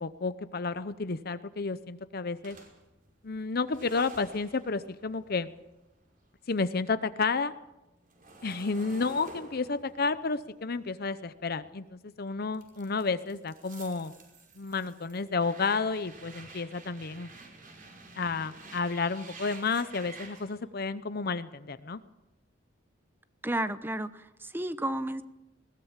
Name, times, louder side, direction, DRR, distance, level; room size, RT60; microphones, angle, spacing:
voice 1, 0.0-2.6 3.2-5.5 6.5-7.5 8.4-14.1 14.6-17.3 18.2-22.0, left 4 dB, 55° left, 12 dB, 0.8 m, -31 dB
sound 1, 2.4-6.7 7.0-12.0 12.5-20.5, right 3 dB, 45° right, 5.3 m, -51 dB
voice 2, 23.4-25.2, right 1 dB, 10° right, 13 dB, 0.9 m, -32 dB
21.5 x 18.0 x 7.4 m, 0.98 s
head